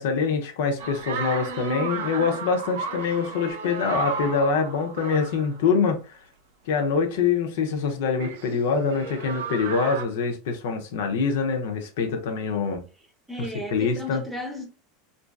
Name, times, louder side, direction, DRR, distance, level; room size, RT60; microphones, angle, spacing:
voice 1, 0.0-6.2 6.7-12.8 13.4-14.2, left 5 dB, 70° left, 0.6 m, -25 dB
sound 1, 0.8-5.7 8.2-10.0, right 5 dB, 75° right, 0.5 m, -34 dB
voice 2, 13.3-14.7, left 1 dB, 10° right, 0.8 m, -34 dB
2.5 x 2.2 x 2.3 m
hypercardioid pair, 95°, 0 cm